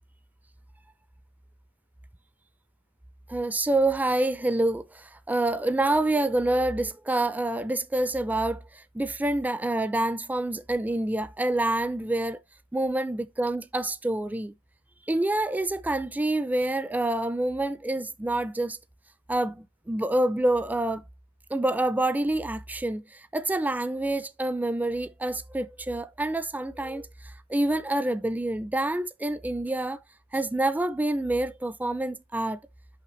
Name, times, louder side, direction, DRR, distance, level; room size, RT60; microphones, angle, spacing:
voice 1, 3.3-12.4 12.7-14.5 15.1-18.8 19.3-21.0 21.5-27.1 27.5-30.0 30.3-32.6, right 1 dB, 5° right, 0.3 m, -27 dB
6.6 x 5.7 x 3.0 m
head